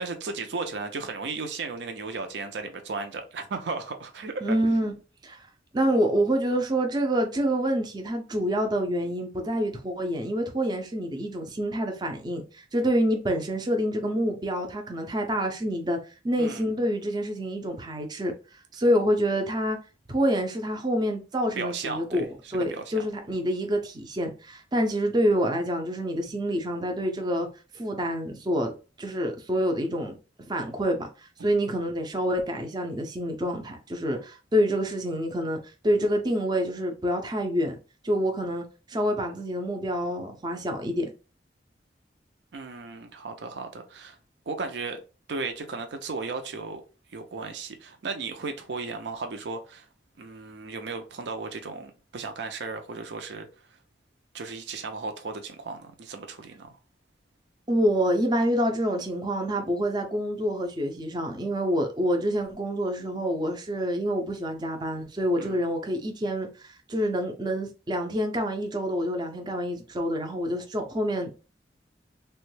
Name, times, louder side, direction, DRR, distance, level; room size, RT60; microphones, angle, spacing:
voice 1, 0.0-4.6 16.4-16.6 21.6-22.2 22.5-22.9 42.5-44.2 44.5-45.0 45.3-46.8 47.1-49.9 50.2-53.5 54.3-56.8 65.4-65.6, right 4 dB, 75° right, 0.5 m, -35 dB
voice 2, 4.4-4.9 5.2-5.5 5.7-16.0 16.2-18.3 18.7-19.8 20.1-27.5 27.7-28.7 29.0-30.2 30.5-35.6 35.8-37.8 38.0-41.1 57.7-71.3, equal, 25° right, 0.5 m, -27 dB
3.0 x 2.2 x 3.1 m
head